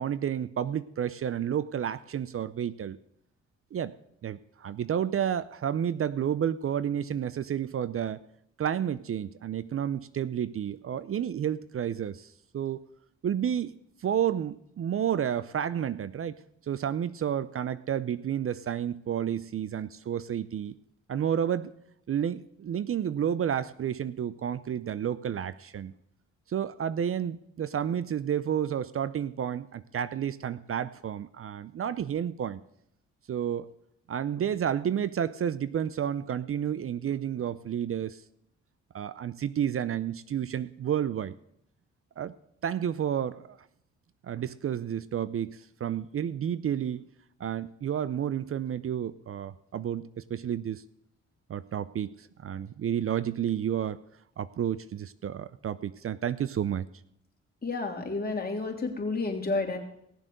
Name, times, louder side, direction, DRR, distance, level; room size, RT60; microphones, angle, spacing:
voice 1, 0.0-3.0 3.7-3.9 4.2-8.2 8.6-12.8 13.2-16.3 16.7-20.7 21.1-21.7 22.1-25.9 26.5-32.6 33.3-33.7 34.1-38.2 38.9-41.3 42.2-42.3 42.6-43.6 44.2-47.0 47.4-50.8 51.5-54.0 54.4-56.9, right 9 dB, 50° right, 16 dB, 0.6 m, -31 dB
voice 2, 57.6-59.8, left 3 dB, 30° left, 1 dB, 3.1 m, -30 dB
17.5 x 7.2 x 6.6 m, 0.75 s
cardioid pair, 70°, 29 cm